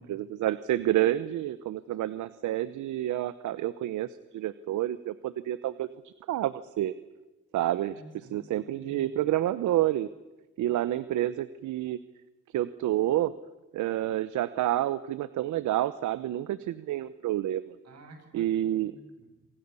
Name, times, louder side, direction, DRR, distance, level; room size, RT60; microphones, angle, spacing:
voice 1, 0.0-6.9 7.5-7.9 8.3-10.1 10.6-12.0 12.5-13.3 13.7-17.7 18.3-18.9, right 13 dB, 80° right, 15 dB, 0.9 m, -29 dB
voice 2, 7.9-9.2 17.8-19.5, right 1 dB, 60° right, 5 dB, 7.5 m, -52 dB
28.0 x 26.0 x 7.0 m, 1.1 s
cardioid pair, 90°, 30 cm